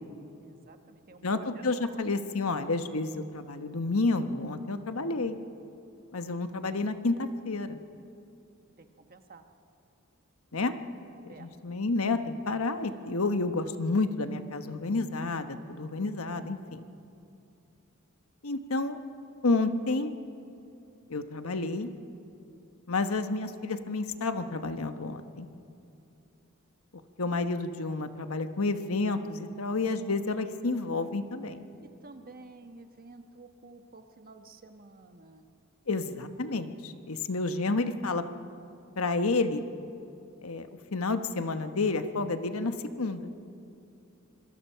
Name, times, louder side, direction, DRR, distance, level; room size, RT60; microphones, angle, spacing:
voice 1, 0.4-1.6 1.9-2.0 8.8-9.4 11.3-11.5 32.0-35.5, right 3 dB, 45° right, 6 dB, 1.3 m, -51 dB
voice 2, 1.2-5.4 6.1-7.8 10.5-10.7 11.4-16.8 18.4-19.0 19.4-20.1 21.1-21.9 22.9-25.5 27.2-31.6 35.9-38.2 39.0-39.6 40.4-43.3, left 3 dB, 80° left, 8 dB, 1.2 m, -30 dB
26.5 x 22.0 x 5.7 m, 2.7 s
head